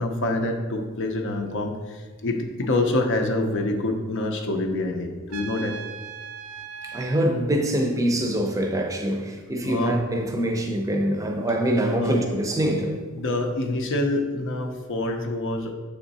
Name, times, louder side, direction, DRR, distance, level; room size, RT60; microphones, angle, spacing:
voice 1, 0.0-5.7 9.6-10.0 12.0-12.2 13.1-15.7, left 2 dB, 55° left, 3 dB, 0.6 m, -26 dB
Trumpet, 5.3-7.3, right 7 dB, 65° right, 0.4 m, -38 dB
voice 2, 6.8-13.0, right 1 dB, 15° right, 3 dB, 0.6 m, -24 dB
6.9 x 3.6 x 4.0 m, 1.4 s
head